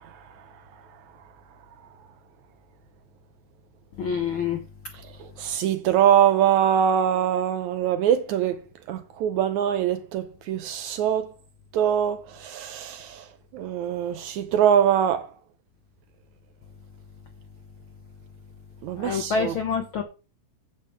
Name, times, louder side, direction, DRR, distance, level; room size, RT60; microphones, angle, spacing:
voice 1, 4.0-4.6 19.0-20.0, left 6 dB, 75° left, 1.2 m, -26 dB
voice 2, 5.4-8.6 8.9-11.3 11.7-13.2 13.5-15.3 18.8-19.5, right 9 dB, 75° right, 1.8 m, -23 dB
11.0 x 8.1 x 3.6 m
omnidirectional pair, 3.8 m